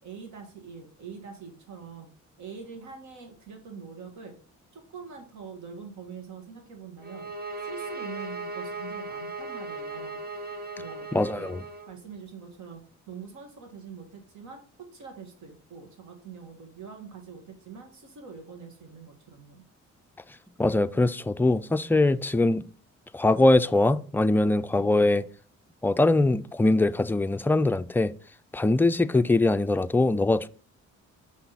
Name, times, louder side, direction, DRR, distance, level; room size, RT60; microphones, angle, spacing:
voice 1, 0.0-2.1 2.4-4.3 4.7-7.3 7.6-10.2 10.8-11.5 11.9-12.8 13.1-19.6, right 6 dB, 70° right, 1.8 m, -44 dB
sound 1, 7.0-11.9, right 2 dB, 30° right, 1.1 m, -37 dB
voice 2, 11.1-11.6 20.6-22.7 23.1-25.2 25.8-28.1 28.5-30.5, left 2 dB, 5° left, 0.3 m, -22 dB
6.1 x 5.8 x 4.0 m
cardioid pair, 90°, 30 cm